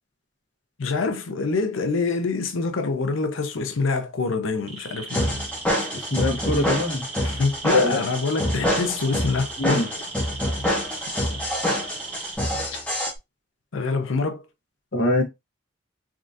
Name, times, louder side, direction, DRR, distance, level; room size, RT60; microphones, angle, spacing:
voice 1, 0.8-5.4 7.2-9.9 13.7-14.4, left 4 dB, 85° left, 0.6 m, -25 dB
sound 1, 4.5-12.4, right 4 dB, 35° right, 1.0 m, -38 dB
sound 2, 5.1-13.1, equal, 5° left, 0.8 m, -26 dB
voice 2, 5.9-7.1 7.7-8.0 9.6-9.9 14.9-15.2, left 2 dB, 65° left, 1.0 m, -23 dB
3.6 x 2.5 x 2.5 m
head